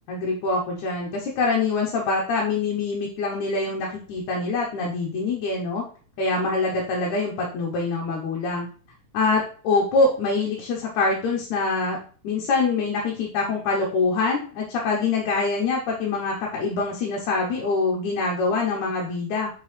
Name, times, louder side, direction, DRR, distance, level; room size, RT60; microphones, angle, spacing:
voice 1, 0.1-5.8 6.2-8.7 9.1-12.0 12.2-19.5, left 3 dB, 70° left, -2 dB, 2.4 m, -24 dB
5.5 x 5.2 x 3.3 m, 0.41 s
omnidirectional pair, 3.6 m